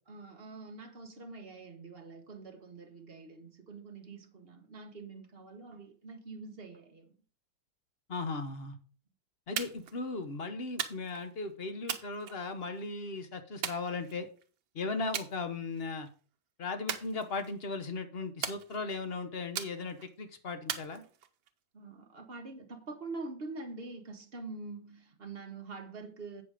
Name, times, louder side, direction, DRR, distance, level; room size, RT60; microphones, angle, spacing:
voice 1, 0.1-7.1 21.7-26.4, right 3 dB, 40° right, 1.0 m, -45 dB
voice 2, 8.1-8.8 9.5-14.3 14.7-16.1 16.6-21.0, left 3 dB, 40° left, 0.9 m, -37 dB
sound 1, 9.6-10.0 10.8-11.3 11.9-12.8 13.6-14.4 15.1-15.3 15.7-16.1 16.9-17.7 18.4-19.1 19.6-20.1 20.7-21.5, right 9 dB, 75° right, 1.6 m, -39 dB
8.6 x 6.3 x 4.9 m
omnidirectional pair, 2.2 m